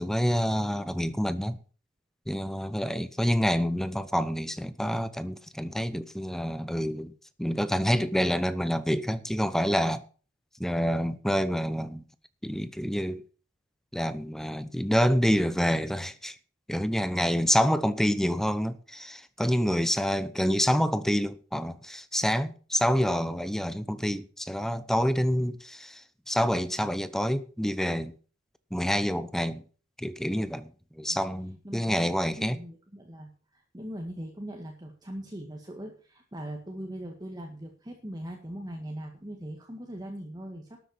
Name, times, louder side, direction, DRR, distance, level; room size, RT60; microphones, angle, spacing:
voice 1, 0.0-1.6 2.3-7.1 7.4-10.0 10.6-12.0 12.4-13.2 13.9-16.4 16.7-28.1 28.7-29.6 30.0-30.7 31.0-32.6, equal, ahead, 0.8 m, -27 dB
voice 2, 17.1-17.5 18.0-18.2 31.1-31.2 31.6-32.1 32.4-40.8, equal, 20° right, 1.9 m, -40 dB
12.5 x 8.0 x 7.1 m
head